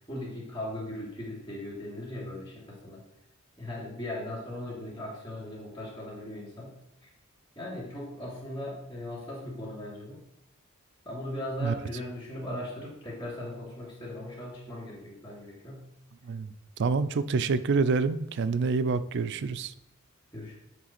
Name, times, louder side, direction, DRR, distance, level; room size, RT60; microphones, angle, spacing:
voice 1, 0.1-3.0 3.6-6.8 7.0-7.1 7.6-10.2 11.0-15.9 20.3-20.6, left 1 dB, 20° left, -8 dB, 2.2 m, -38 dB
voice 2, 16.8-19.7, right 4 dB, 55° right, 13 dB, 0.4 m, -27 dB
7.4 x 3.3 x 5.8 m, 0.83 s
head